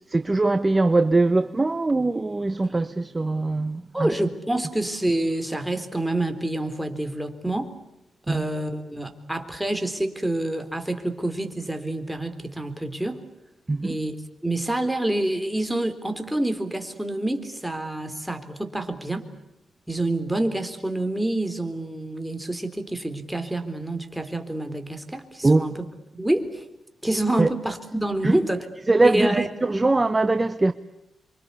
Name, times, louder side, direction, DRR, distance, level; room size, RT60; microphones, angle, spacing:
voice 1, 0.1-4.3 8.3-8.5 13.7-14.0 25.4-25.7 27.4-27.5 28.2-28.4 28.9-30.7, right 2 dB, 25° right, 1.0 m, -22 dB
voice 2, 3.9-7.7 8.3-13.2 13.8-14.1 14.4-19.2 19.9-25.8 26.1-26.6 27.0-28.6 29.0-29.5, right 1 dB, 5° right, 3.8 m, -27 dB
27.5 x 24.5 x 8.4 m
cardioid pair, 65°, 0 cm